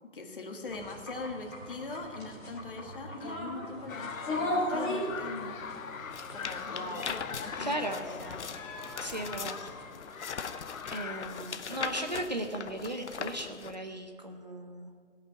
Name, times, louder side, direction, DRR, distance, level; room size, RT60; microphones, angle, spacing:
voice 1, 0.1-5.8 6.3-7.1 7.4-8.5, left 3 dB, 40° left, 3 dB, 1.6 m, -41 dB
sound 1, 0.7-9.8, left 1 dB, 10° left, 2.0 m, -38 dB
sound 2, 3.9-11.6, left 6 dB, 85° left, 1.0 m, -42 dB
sound 3, 6.1-13.8, left 6 dB, 60° left, 0.8 m, -40 dB
voice 2, 7.6-8.0 9.0-9.7 10.9-14.9, right 1 dB, 35° right, 5 dB, 0.6 m, -36 dB
17.0 x 5.7 x 8.8 m, 2.1 s
hypercardioid pair, 180°, 40 cm